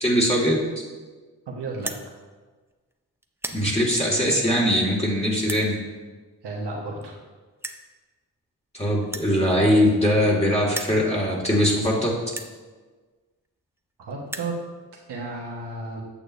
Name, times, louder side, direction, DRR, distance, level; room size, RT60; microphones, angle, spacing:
voice 1, 0.0-0.6 3.5-5.8 8.7-12.2, equal, 15° left, -4 dB, 1.8 m, -21 dB
voice 2, 1.5-1.9 6.4-7.1 14.0-14.6 15.1-16.0, right 3 dB, 80° right, -2 dB, 1.4 m, -32 dB
sound 1, 1.7-2.0 2.7-2.9 3.2-3.6 4.4-4.5 5.4-5.7 6.7-6.8 7.0-7.1 7.6-7.8 9.0-10.3 10.6-11.0 11.7-11.8 12.3-12.5 13.4-13.5 13.8-13.9 14.1-14.5, right 1 dB, 5° right, 0.5 m, -35 dB
8.7 x 6.6 x 2.6 m, 1.3 s
cardioid pair, 50°, 40 cm